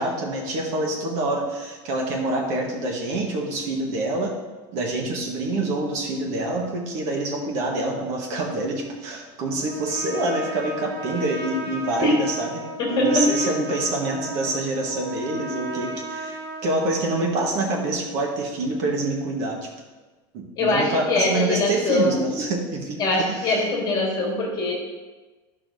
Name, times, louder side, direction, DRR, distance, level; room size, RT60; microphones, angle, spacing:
voice 1, 0.0-4.4 4.7-12.6 12.9-19.6 20.3-23.6, right 2 dB, 55° right, 1 dB, 1.5 m, -26 dB
Trumpet, 9.5-17.2, right 2 dB, 90° right, 1.1 m, -35 dB
voice 2, 12.8-13.6 20.6-22.4 23.0-24.7, left 2 dB, 30° left, -2 dB, 1.9 m, -23 dB
10.5 x 5.6 x 2.7 m, 1.2 s
cardioid pair, 165°, 14 cm